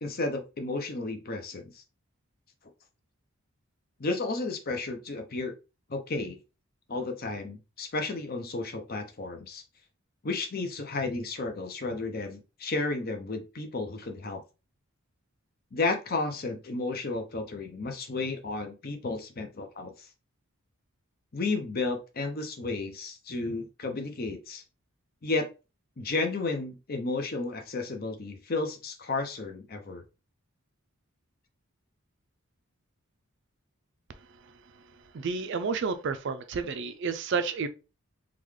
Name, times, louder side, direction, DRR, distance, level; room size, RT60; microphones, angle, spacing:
voice 1, 0.0-1.8 4.0-5.5 5.9-6.4 6.9-9.6 10.2-14.4 15.7-20.1 21.3-24.6 25.2-25.5 26.0-30.0, left 3 dB, 45° left, 0.6 m, -32 dB
voice 2, 35.1-37.7, right 5 dB, 55° right, 0.4 m, -30 dB
3.8 x 2.3 x 3.1 m
head